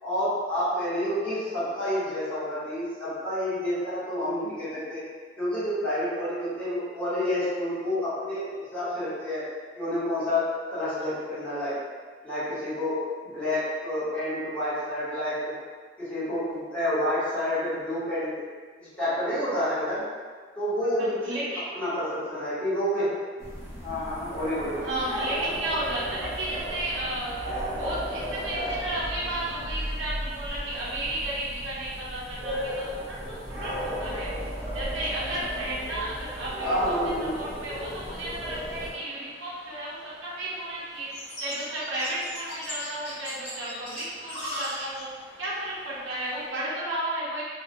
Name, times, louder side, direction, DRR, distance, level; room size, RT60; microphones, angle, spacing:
voice 1, 0.0-5.0 5.4-8.5 8.7-9.4 9.8-11.7 12.2-12.9 13.3-15.5 16.0-18.3 18.8-20.0 20.6-21.4 21.7-23.1 23.8-24.9 36.6-37.3, left 1 dB, 5° left, -14 dB, 1.1 m, -29 dB
voice 2, 21.0-21.7 24.8-27.4 27.8-34.3 34.7-41.1 41.4-45.1 45.4-47.5, right 1 dB, 85° right, -8 dB, 0.5 m, -33 dB
sound 1, 23.4-38.9, equal, 20° right, 0.6 m, -34 dB
sound 2, 33.5-46.5, equal, 65° left, 0.9 m, -43 dB
2.3 x 2.2 x 2.6 m, 1.5 s
head